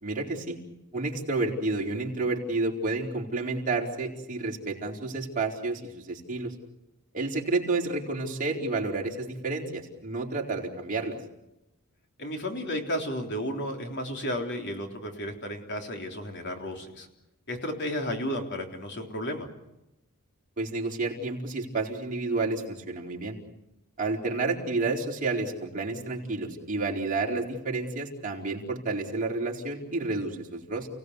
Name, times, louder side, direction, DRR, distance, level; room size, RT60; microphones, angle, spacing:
voice 1, 0.0-0.6 0.9-6.5 7.1-11.2 20.6-23.4 24.0-30.9, right 3 dB, 40° right, -2 dB, 4.5 m, -30 dB
voice 2, 12.2-17.1 17.5-19.5, equal, 55° left, 3 dB, 3.7 m, -33 dB
30.0 x 17.5 x 8.2 m, 0.92 s
head